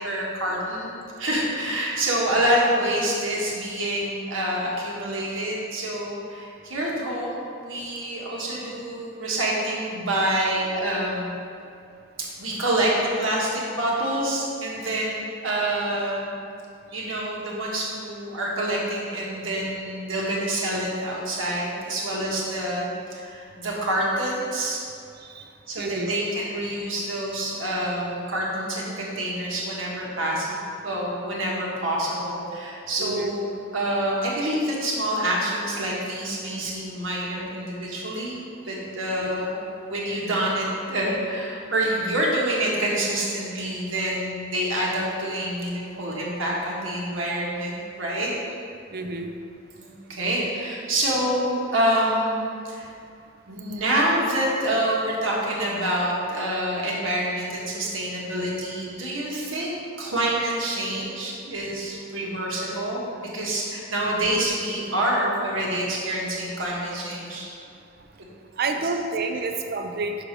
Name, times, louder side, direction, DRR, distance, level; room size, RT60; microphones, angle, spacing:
voice 1, 0.0-11.3 12.2-16.4 16.9-24.8 25.7-38.4 38.7-48.3 49.8-52.9 53.5-67.5 69.3-69.4, right 1 dB, 75° right, -4 dB, 1.5 m, -27 dB
voice 2, 25.8-26.1 33.0-33.3 39.2-39.3 48.9-49.3 68.6-70.2, right 3 dB, 50° right, 6 dB, 0.5 m, -29 dB
6.4 x 4.9 x 5.2 m, 2.4 s
head